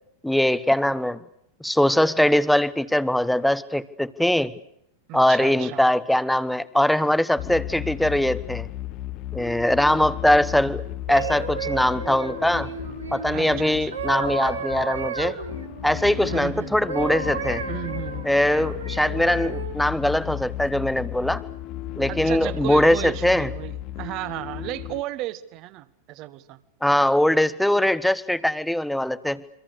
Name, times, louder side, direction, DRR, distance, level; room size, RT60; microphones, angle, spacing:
voice 1, 0.2-1.2 1.6-4.5 5.1-8.7 9.3-10.8 11.1-12.7 13.1-15.4 15.8-17.6 18.2-21.4 22.0-23.5 26.8-29.4, left 1 dB, ahead, 16 dB, 1.1 m, -21 dB
voice 2, 5.1-5.8 13.3-14.3 16.2-16.9 17.7-18.3 22.1-26.6, right 16 dB, 40° right, 15 dB, 1.5 m, -34 dB
sound 1, 7.4-25.0, left 14 dB, 40° left, 1.1 m, -35 dB
sound 2, 10.9-16.5 16.9-19.8 20.4-20.7, right 6 dB, 75° right, 3.5 m, -33 dB
28.5 x 24.5 x 6.8 m, 0.78 s
figure-of-eight pair, 90°, 0 cm